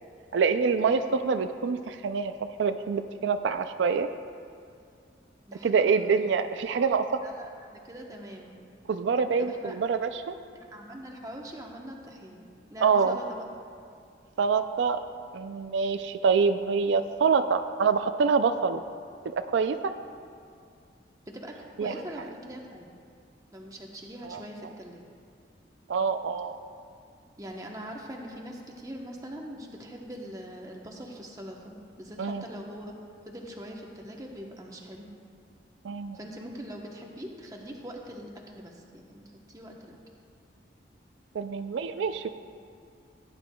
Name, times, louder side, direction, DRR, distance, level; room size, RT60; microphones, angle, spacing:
voice 1, 0.3-4.1 5.6-7.2 8.9-10.4 12.8-13.2 14.4-15.0 15.3-18.8 19.2-19.9 21.8-21.9 24.2-24.4 25.9-26.6 32.2-32.4 35.8-36.2 41.3-42.3, right 5 dB, 85° right, 9 dB, 0.4 m, -26 dB
voice 2, 5.5-6.2 7.2-8.6 9.4-9.8 10.5-13.4 21.3-21.5 21.8-22.8 23.5-25.0 27.4-32.9 33.3-35.1 36.1-40.0, equal, 20° right, 0 dB, 0.9 m, -42 dB
16.5 x 9.7 x 2.3 m, 2.3 s
head